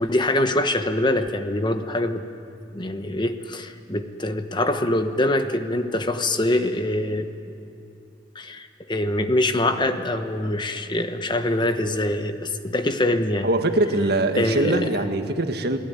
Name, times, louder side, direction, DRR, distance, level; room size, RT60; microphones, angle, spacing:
voice 1, 0.0-2.2 2.7-7.3 8.3-13.5 14.3-14.9, left 1 dB, 25° left, 8 dB, 1.1 m, -24 dB
voice 2, 13.4-15.8, right 2 dB, 60° right, 6 dB, 1.7 m, -22 dB
29.5 x 19.0 x 9.6 m, 2.6 s
head